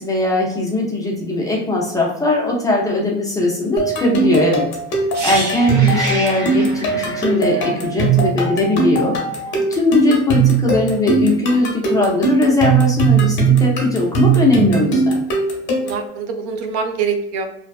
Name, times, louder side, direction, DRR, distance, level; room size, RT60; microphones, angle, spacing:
voice 1, 0.0-4.7 5.2-9.2 9.7-15.2, left 2 dB, 10° left, -2 dB, 0.4 m, -19 dB
sound 1, 3.8-16.1, right 4 dB, 35° left, 0.8 m, -19 dB
sound 2, 5.1-9.0 9.3-9.5, right 1 dB, 50° right, 1.0 m, -28 dB
voice 2, 9.5-9.8 15.6-17.5, right 6 dB, 75° right, 5 dB, 0.6 m, -25 dB
2.6 x 2.2 x 2.3 m, 0.76 s
supercardioid pair, 135°, 33 cm